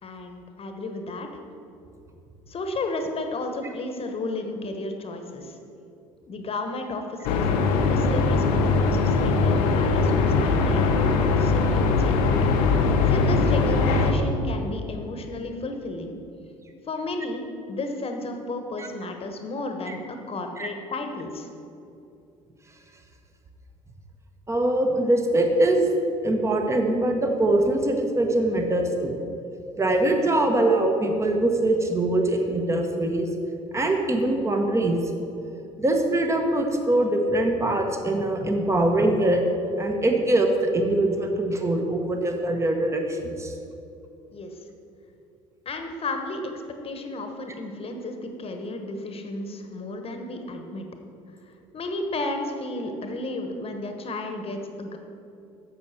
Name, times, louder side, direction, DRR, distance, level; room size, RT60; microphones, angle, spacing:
voice 1, 0.0-1.4 2.5-5.6 6.3-12.3 13.1-16.1 16.9-21.5 44.3-44.7 45.6-50.9 51.4-55.0, left 2 dB, 35° left, 5 dB, 1.2 m, -33 dB
sound 1, 7.2-14.1, left 4 dB, 65° left, 0.9 m, -21 dB
voice 2, 24.5-25.9 26.2-29.2 29.8-33.3 33.7-35.0 35.8-39.4 39.8-43.5, right 1 dB, 15° right, 4 dB, 1.2 m, -23 dB
11.0 x 7.3 x 4.4 m, 2.7 s
figure-of-eight pair, 60°, 17 cm